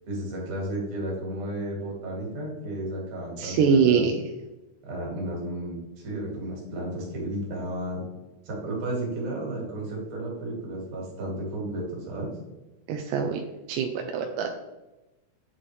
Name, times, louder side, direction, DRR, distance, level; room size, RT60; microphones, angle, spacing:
voice 1, 0.1-4.1 4.8-8.0 8.4-12.3, right 1 dB, 70° right, -2 dB, 3.4 m, -33 dB
voice 2, 3.4-4.2 12.9-13.4 13.7-14.6, right 6 dB, 90° right, 4 dB, 2.1 m, -23 dB
9.0 x 4.2 x 3.2 m, 1.0 s
omnidirectional pair, 3.6 m